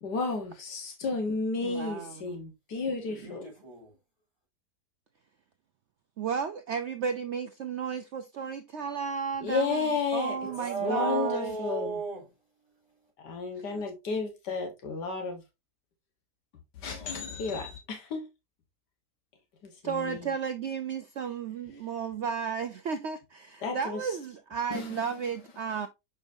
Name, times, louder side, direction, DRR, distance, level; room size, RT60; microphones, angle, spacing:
voice 1, 0.0-3.4 9.4-10.4 10.8-11.9 13.2-15.4 16.8-18.2 19.8-20.3 23.6-24.0 24.7-24.9, left 4 dB, 90° left, 1.8 m, -32 dB
voice 2, 1.6-2.4 3.1-3.3 6.2-11.6 13.6-13.7 19.8-25.9, right 6 dB, 70° right, 0.6 m, -33 dB
voice 3, 3.1-4.0 10.4-12.3 12.6-13.1, right 4 dB, 60° left, 5.3 m, -36 dB
6.8 x 5.3 x 2.6 m
omnidirectional pair, 1.7 m